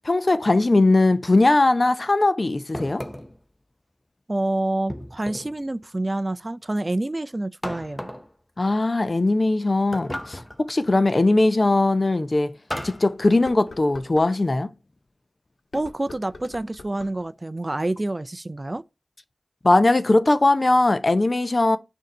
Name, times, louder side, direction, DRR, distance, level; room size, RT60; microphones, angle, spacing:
voice 1, 0.0-3.0 8.6-10.4 10.7-12.6 12.8-14.7 19.6-21.8, left 2 dB, 45° left, 0.6 m, -19 dB
sound 1, 2.7-3.4 4.9-5.6 7.6-8.3 9.9-10.7 12.7-13.1, left 1 dB, 15° left, 0.8 m, -34 dB
voice 2, 4.3-8.1 15.7-18.8, right 2 dB, 35° right, 0.4 m, -27 dB
sound 2, 11.1-11.2 11.8-11.9 13.1-14.3 15.6-17.3, left 3 dB, 75° left, 1.1 m, -43 dB
6.4 x 2.7 x 5.3 m
wide cardioid pair, 50°, 0 cm